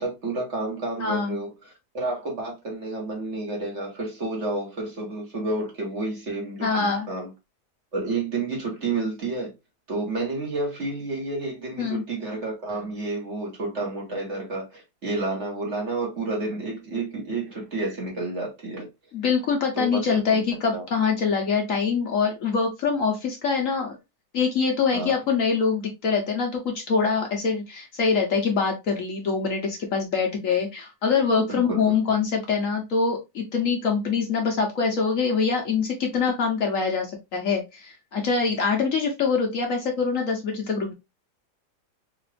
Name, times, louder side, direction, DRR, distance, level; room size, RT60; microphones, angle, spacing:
voice 1, 0.0-7.3 7.9-9.5 9.9-18.9 19.7-20.4 20.7-20.8 24.9-25.1 31.4-32.2, right 2 dB, 45° right, 1.4 m, -30 dB
voice 2, 1.0-1.4 6.6-7.1 11.8-12.0 19.1-24.0 24.3-40.9, left 5 dB, 55° left, 1.2 m, -24 dB
3.8 x 2.5 x 3.2 m
omnidirectional pair, 1.8 m